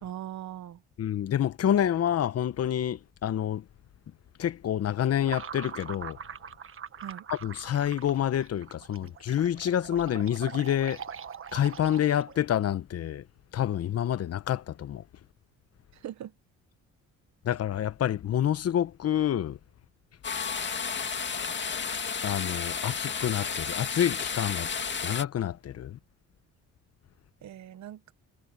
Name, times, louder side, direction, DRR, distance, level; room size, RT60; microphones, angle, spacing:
voice 1, 0.0-0.8 7.0-7.2 9.0-9.1 15.9-16.3 27.4-28.1, right 11 dB, 65° right, 1.1 m, -40 dB
voice 2, 1.0-3.6 4.4-6.2 7.3-11.0 11.5-13.3 13.5-15.0 17.4-19.6 22.2-24.7 25.0-26.0, left 10 dB, 55° left, 0.9 m, -28 dB
sound 1, 5.2-12.5, right 8 dB, 45° right, 1.3 m, -42 dB
sound 2, 20.2-25.2, left 6 dB, 35° left, 2.1 m, -32 dB
cardioid pair, 90°, 30 cm